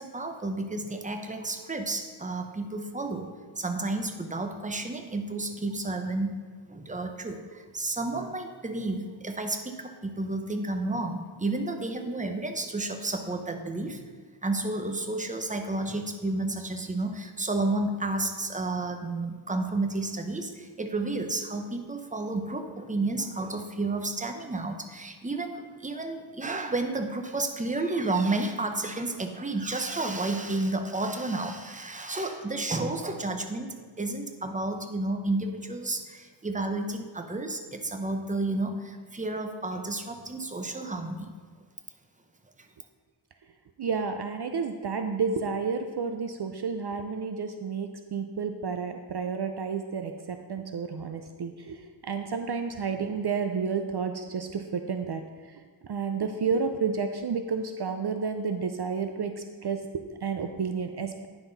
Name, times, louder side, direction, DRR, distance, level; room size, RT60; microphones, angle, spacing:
voice 1, 0.0-3.3 3.6-6.4 6.7-14.1 14.4-41.3, right 2 dB, 15° right, 5 dB, 0.8 m, -31 dB
voice 2, 43.8-51.8 52.0-55.2 55.8-59.3 59.6-61.3, right 5 dB, 55° right, 7 dB, 0.6 m, -31 dB
9.9 x 5.8 x 4.0 m, 1.5 s
wide cardioid pair, 60°, 48 cm